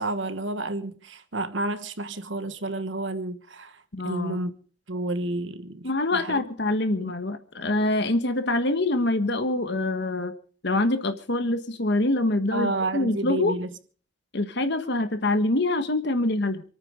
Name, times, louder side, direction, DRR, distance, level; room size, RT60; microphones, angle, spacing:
voice 1, 0.0-4.5 4.9-6.4 7.0-7.1 12.5-13.7, right 2 dB, 65° right, 1.4 m, -30 dB
voice 2, 3.9-4.4 5.8-10.3 10.6-13.6 14.3-16.6, left 2 dB, 55° left, 1.4 m, -25 dB
27.5 x 9.3 x 5.2 m
head